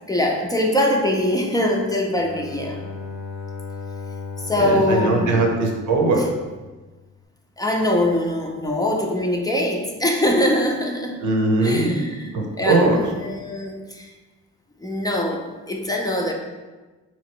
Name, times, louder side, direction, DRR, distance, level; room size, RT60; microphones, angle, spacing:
voice 1, 0.1-2.8 4.4-5.5 6.2-6.3 7.6-11.2 11.6-14.1 14.8-16.3, left 1 dB, 10° left, 0 dB, 0.6 m, -23 dB
Bowed string instrument, 2.1-7.0, left 5 dB, 75° left, 0.8 m, -36 dB
voice 2, 4.6-6.3 11.2-11.9 12.3-13.0, right 2 dB, 75° right, 1 dB, 0.9 m, -20 dB
3.8 x 3.1 x 4.6 m, 1.3 s
cardioid pair, 90°, 30 cm